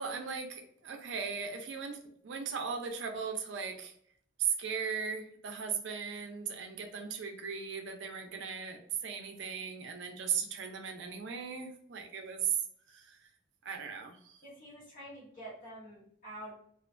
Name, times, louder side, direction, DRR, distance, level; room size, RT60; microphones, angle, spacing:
voice 1, 0.0-2.0 2.2-3.9 4.4-12.5 12.9-13.2 13.6-14.4, right 6 dB, 70° right, 4 dB, 0.4 m, -37 dB
voice 2, 14.4-16.5, right 1 dB, 45° left, -5 dB, 1.2 m, -47 dB
2.3 x 2.2 x 2.4 m, 0.65 s
head